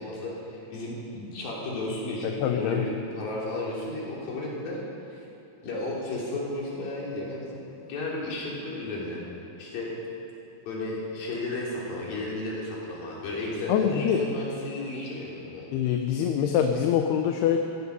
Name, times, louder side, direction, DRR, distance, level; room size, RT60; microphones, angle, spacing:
voice 1, 0.0-4.8 5.1-5.2 5.6-7.6 7.9-9.2 9.6-9.9 10.6-15.7, left 2 dB, 60° left, -4 dB, 5.0 m, -33 dB
voice 2, 2.2-2.8 13.7-14.2 15.7-17.6, left 8 dB, 80° left, 4 dB, 2.8 m, -24 dB
16.0 x 16.0 x 5.5 m, 3.0 s
omnidirectional pair, 4.7 m